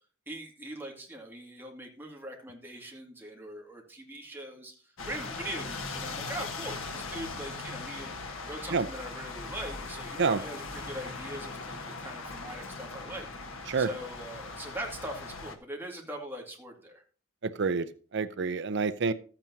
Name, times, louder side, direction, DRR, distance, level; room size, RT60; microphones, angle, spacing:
voice 1, 0.3-4.7 5.0-8.1 8.5-13.3 13.8-17.0, right 1 dB, 10° right, 2.2 m, -41 dB
sound 1, 5.0-15.6, left 3 dB, 80° left, 1.4 m, -39 dB
voice 2, 17.4-17.9 18.1-19.1, right 4 dB, 60° right, 0.6 m, -27 dB
13.5 x 8.9 x 2.8 m
head